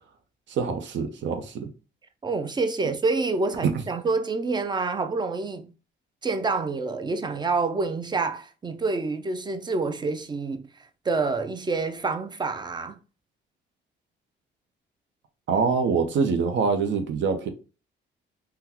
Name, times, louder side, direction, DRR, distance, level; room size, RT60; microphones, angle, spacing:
voice 1, 0.5-1.7 2.8-2.9 3.6-3.8 15.5-17.5, right 5 dB, 65° right, 0.7 m, -25 dB
voice 2, 2.2-5.7 6.2-13.0, right 3 dB, 20° right, 0.5 m, -27 dB
3.7 x 2.2 x 2.9 m
cardioid pair, 90°, 20 cm